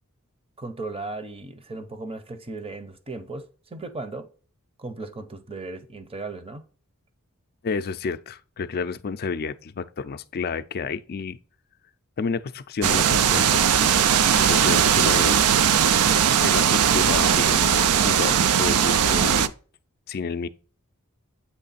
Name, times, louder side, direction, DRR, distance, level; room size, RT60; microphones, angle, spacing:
voice 1, 0.6-4.3 4.8-6.6, right 3 dB, 25° right, 0.8 m, -36 dB
voice 2, 7.6-11.4 12.2-13.6 14.3-15.4 16.4-19.5 20.1-20.5, left 5 dB, 45° left, 0.4 m, -30 dB
sound 1, 12.8-19.5, right 8 dB, 70° right, 0.4 m, -19 dB
8.4 x 3.2 x 4.1 m
head